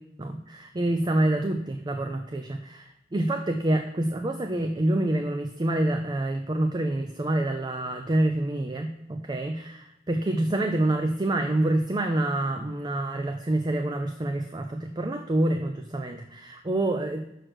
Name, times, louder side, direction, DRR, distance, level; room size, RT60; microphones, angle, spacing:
voice 1, 0.2-17.2, right 1 dB, 25° right, 6 dB, 0.4 m, -27 dB
6.3 x 4.8 x 6.1 m, 0.83 s
head